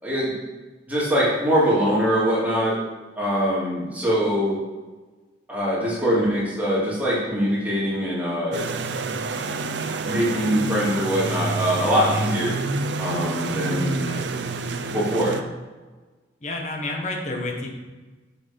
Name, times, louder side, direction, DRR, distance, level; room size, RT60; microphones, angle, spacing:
voice 1, 0.9-2.8 3.2-4.6 5.5-8.6 10.0-12.5 13.0-14.1 14.9-15.4, equal, 10° right, -8 dB, 2.9 m, -23 dB
sound 1, 8.5-15.4, right 3 dB, 85° right, 0.6 m, -28 dB
voice 2, 16.4-17.7, left 2 dB, 40° left, 1 dB, 1.4 m, -30 dB
7.2 x 6.9 x 5.3 m, 1.3 s
head